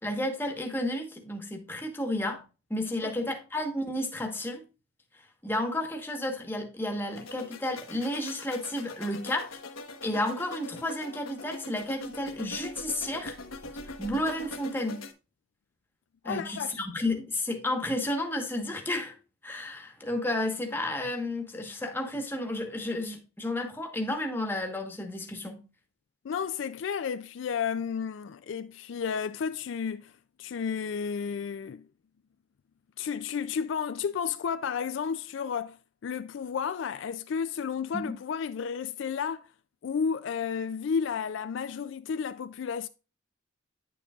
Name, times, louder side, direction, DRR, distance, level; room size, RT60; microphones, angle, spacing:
voice 1, 0.0-2.4 2.7-4.7 5.4-9.6 10.0-13.4 13.8-15.1 16.2-19.1 19.4-25.6 37.9-38.1, left 1 dB, 10° left, 1.1 m, -32 dB
sound 1, 7.1-15.1, left 2 dB, 85° left, 1.1 m, -42 dB
voice 2, 16.2-16.8 26.2-30.1 30.4-31.9 33.0-35.8 36.0-39.5 39.8-42.9, left 6 dB, 60° left, 0.3 m, -32 dB
9.7 x 6.9 x 2.4 m
head